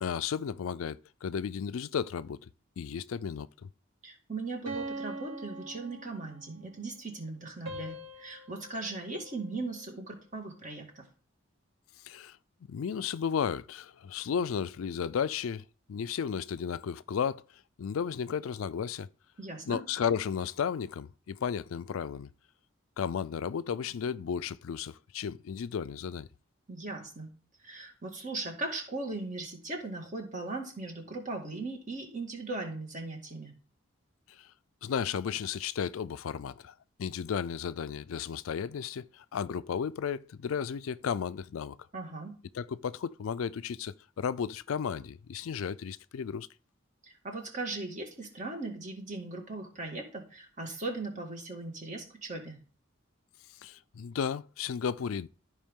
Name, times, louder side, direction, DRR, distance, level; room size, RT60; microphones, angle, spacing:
voice 1, 0.0-2.4 2.8-3.7 12.0-12.4 12.7-15.6 15.9-17.4 17.8-19.1 19.7-22.3 23.0-26.3 34.3-34.5 34.8-36.7 37.0-41.8 42.5-46.5 53.6-55.3, left 7 dB, 90° left, 0.4 m, -34 dB
voice 2, 4.0-11.1 19.4-19.8 26.7-27.3 27.6-33.5 41.9-42.4 47.0-52.6, right 3 dB, 40° right, 2.0 m, -38 dB
sound 1, 4.6-6.6 7.6-10.0, right 1 dB, 75° right, 2.6 m, -43 dB
13.0 x 4.8 x 3.7 m
head